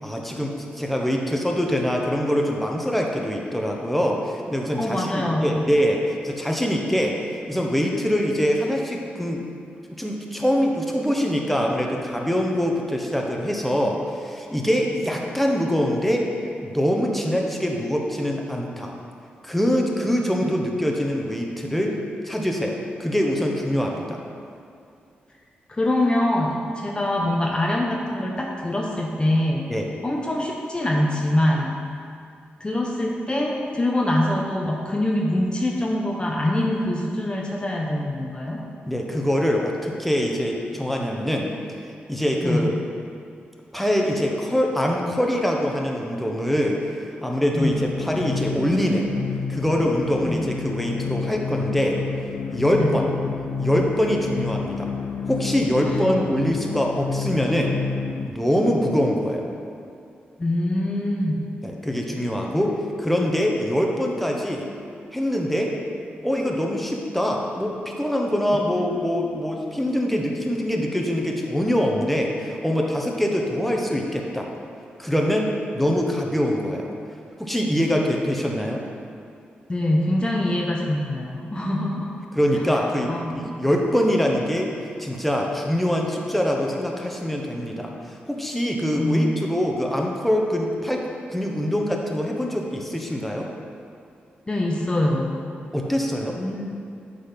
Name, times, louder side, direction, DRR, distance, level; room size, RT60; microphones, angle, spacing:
voice 1, 0.0-7.2 7.5-9.4 9.9-16.3 16.6-18.9 19.4-21.9 22.2-24.2 29.7-29.9 38.9-41.5 42.1-42.7 43.7-46.8 47.2-49.1 49.5-52.0 52.5-53.1 53.6-54.9 55.3-57.8 58.2-59.5 61.6-64.7 65.1-65.7 66.2-74.5 75.0-77.0 77.4-78.8 82.3-84.7 85.0-87.9 88.3-93.5 95.7-96.4, equal, 5° left, 0 dB, 1.1 m, -24 dB
voice 2, 4.8-5.6 20.4-20.5 25.7-29.7 30.0-31.8 32.6-38.6 42.4-42.7 47.6-47.8 50.2-50.4 52.8-53.1 60.4-61.4 79.7-82.1 83.1-83.5 88.9-89.4 94.5-95.4 96.4-96.6, left 1 dB, 25° left, -1 dB, 0.9 m, -24 dB
sound 1, 47.6-58.3, left 5 dB, 75° left, 0.4 m, -29 dB
8.5 x 4.0 x 5.8 m, 2.4 s
cardioid pair, 65°, 4 cm